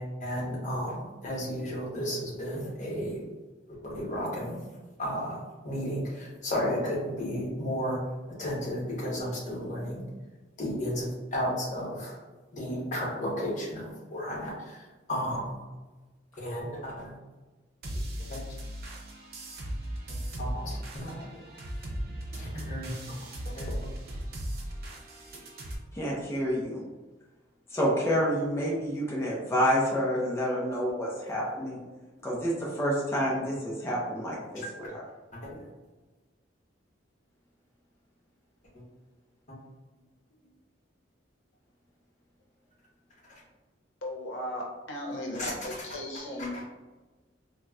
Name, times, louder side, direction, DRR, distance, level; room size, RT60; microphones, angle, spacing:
voice 1, 0.0-3.2 3.7-4.6 5.0-8.0 8.4-10.0 10.6-12.2 12.5-14.8 15.1-15.6 16.4-17.1 18.2-18.4 20.4-21.3 22.4-23.2 23.4-23.9 34.6-34.7 35.3-35.6 39.5-39.6 43.3-43.4 45.3-45.5 46.4-46.7, equal, 40° left, -3 dB, 0.9 m, -33 dB
sound 1, 17.8-25.8, right 1 dB, 55° right, 0.5 m, -37 dB
voice 2, 25.9-26.8 27.7-31.8 32.2-35.0, equal, 15° left, -5 dB, 0.5 m, -28 dB
voice 3, 44.0-44.6 44.9-46.5, left 1 dB, 85° left, -2 dB, 0.7 m, -36 dB
3.8 x 2.0 x 2.3 m, 1.2 s
head